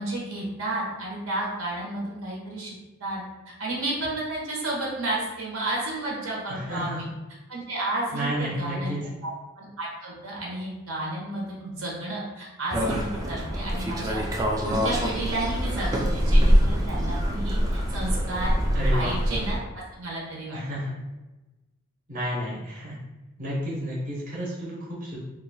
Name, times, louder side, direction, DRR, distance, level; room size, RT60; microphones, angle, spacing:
voice 1, 0.0-3.2 3.6-7.1 7.5-14.2 14.6-17.6 17.9-18.6 18.9-20.6, right 2 dB, 70° right, -3 dB, 0.9 m, -32 dB
voice 2, 6.5-7.0 8.1-9.0 18.7-19.1 20.5-20.9 22.1-23.0 23.4-25.2, equal, 40° right, -5 dB, 0.8 m, -31 dB
sound 1, 12.7-19.6, equal, 15° right, 0.3 m, -24 dB
2.7 x 2.3 x 4.0 m, 1.1 s
head